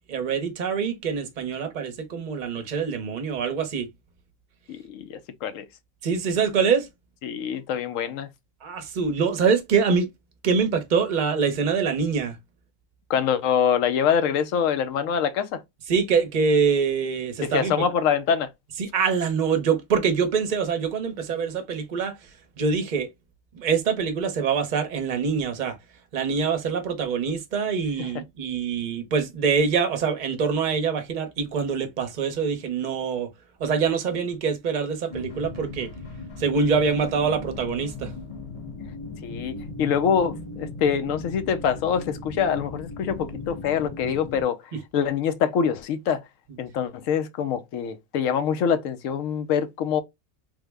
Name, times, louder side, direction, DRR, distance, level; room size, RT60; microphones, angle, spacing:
voice 1, 0.1-3.9 6.0-6.9 8.6-10.1 10.4-12.4 15.9-17.8 18.8-22.3 22.6-23.1 23.5-25.8 26.1-33.3 33.6-35.9 36.4-38.1 44.7-44.8, right 5 dB, 40° right, 0.7 m, -24 dB
voice 2, 4.7-5.6 7.2-8.3 13.1-15.6 17.4-18.5 39.2-44.6 44.9-46.2 46.6-50.0, left 7 dB, 75° left, 1.0 m, -25 dB
sound 1, 35.1-44.4, left 3 dB, 45° left, 0.4 m, -37 dB
3.5 x 2.1 x 3.3 m
omnidirectional pair, 1.4 m